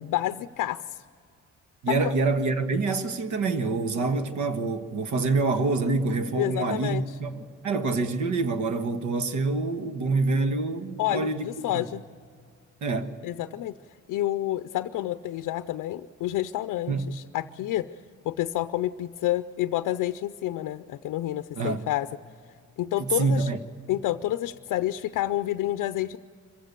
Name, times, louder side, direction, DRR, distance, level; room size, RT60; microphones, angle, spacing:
voice 1, 0.0-1.0 1.9-2.1 6.3-7.0 11.0-12.0 13.2-13.7 14.1-17.9 18.3-22.1 22.8-23.5 23.9-26.2, left 14 dB, 75° left, 0.6 m, -29 dB
voice 2, 1.8-11.5 11.7-11.8 12.8-13.1 16.9-17.1 21.5-21.8 23.0-23.6, right 3 dB, 65° right, 1.5 m, -26 dB
26.0 x 15.5 x 6.8 m
cardioid pair, 160°, 32 cm